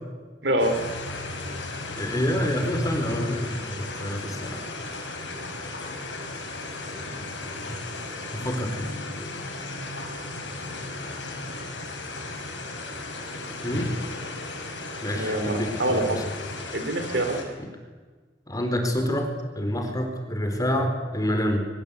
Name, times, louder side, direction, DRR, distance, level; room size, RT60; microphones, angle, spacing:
voice 1, 0.4-0.8 15.1-16.2 16.7-17.4, right 1 dB, 70° right, 6 dB, 3.8 m, -25 dB
sound 1, 0.6-17.4, left 2 dB, 85° left, 6.2 m, -35 dB
voice 2, 2.0-4.6 7.0-7.3 7.6-7.7 8.3-8.9 13.6-13.9 15.0-16.2 18.5-21.7, equal, 20° left, 4 dB, 4.4 m, -27 dB
23.5 x 23.0 x 8.4 m, 1.4 s
head